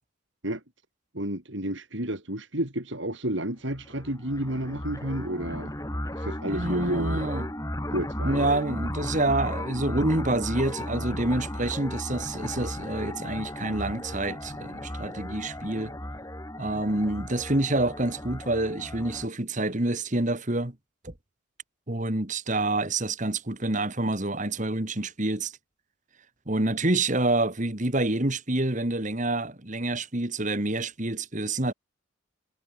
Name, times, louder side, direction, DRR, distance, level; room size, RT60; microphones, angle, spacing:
voice 1, 1.1-5.7 6.1-7.3 7.9-8.5, right 1 dB, 60° right, 4.2 m, -31 dB
sound 1, 3.7-19.3, left 1 dB, 15° left, 3.6 m, -35 dB
voice 2, 6.4-7.5 8.2-15.9 16.6-20.8 21.0-21.1 21.9-25.5 26.5-31.7, right 2 dB, 35° right, 2.0 m, -27 dB
head